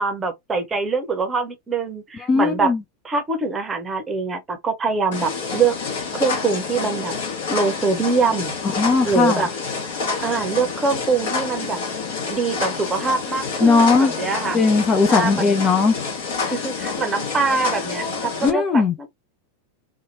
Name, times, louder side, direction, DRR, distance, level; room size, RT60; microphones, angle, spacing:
voice 1, 0.0-2.7 3.0-5.7 6.2-7.1 7.5-8.5 9.0-9.5 10.2-11.8 12.3-14.6 15.1-15.6 16.4-19.1, right 4 dB, 15° right, 0.8 m, -23 dB
voice 2, 2.2-2.8 8.6-9.4 13.6-14.1 14.5-16.0 18.4-19.0, left 4 dB, 25° left, 0.4 m, -18 dB
sound 1, 5.1-18.5, left 4 dB, 55° left, 1.2 m, -28 dB
2.8 x 2.2 x 2.6 m
figure-of-eight pair, 90°, 0 cm